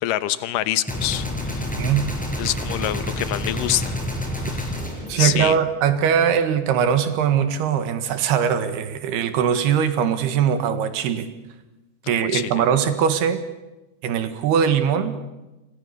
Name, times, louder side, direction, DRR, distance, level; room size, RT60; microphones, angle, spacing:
voice 1, 0.0-1.7 2.4-4.0 4.4-4.7 5.2-5.6 12.0-12.6, left 14 dB, 70° left, 14 dB, 2.4 m, -26 dB
Gunshot gunfire, 0.9-6.1, left 1 dB, ahead, 5.1 m, -29 dB
voice 2, 5.1-11.3 12.1-13.4 14.0-15.2, right 8 dB, 85° right, 10 dB, 3.7 m, -21 dB
28.5 x 25.5 x 6.9 m, 1.0 s
omnidirectional pair, 4.5 m